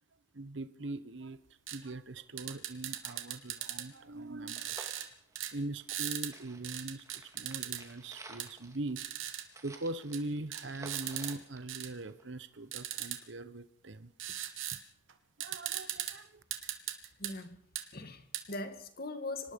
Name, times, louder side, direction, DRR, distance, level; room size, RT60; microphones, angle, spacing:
voice 1, 0.3-1.4 1.7-5.1 5.5-9.0 9.6-14.1 15.4-16.4, right 2 dB, 60° right, 13 dB, 1.0 m, -41 dB
sound 1, 1.7-1.8 2.4-3.9 4.5-5.1 5.4-5.5 5.9-6.3 6.6-7.8 8.4-8.5 9.0-9.4 10.1-10.2 10.5-11.3 11.7-11.9 12.7-13.2 14.2-14.8 15.1-15.2 15.4-16.1 16.5-17.3 17.8-17.9 18.3-18.4, right 12 dB, 80° right, 2.4 m, -38 dB
sound 2, 2.1-2.2 2.5-2.6 2.9-6.1 6.3-12.4 12.8-12.9, right 2 dB, 15° right, 2.3 m, -53 dB
voice 2, 17.2-17.6 17.9-19.5, left 2 dB, 45° left, 9 dB, 2.0 m, -41 dB
25.5 x 19.5 x 5.3 m, 0.67 s
head